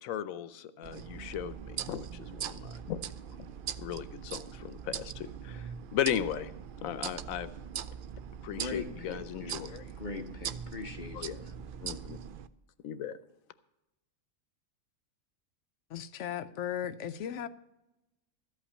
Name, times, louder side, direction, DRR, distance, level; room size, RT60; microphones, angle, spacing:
voice 1, 0.0-3.0 3.8-6.5 6.8-7.5 8.4-9.8 11.1-11.3 11.8-12.2 12.8-13.2, left 10 dB, 85° left, 14 dB, 1.1 m, -36 dB
sound 1, 0.8-12.5, right 8 dB, 70° right, 0.5 m, -41 dB
voice 2, 8.5-11.6, left 3 dB, 40° left, 6 dB, 0.9 m, -42 dB
voice 3, 15.9-17.5, left 9 dB, 70° left, 12 dB, 0.9 m, -36 dB
13.5 x 5.7 x 8.5 m, 0.95 s
omnidirectional pair, 1.4 m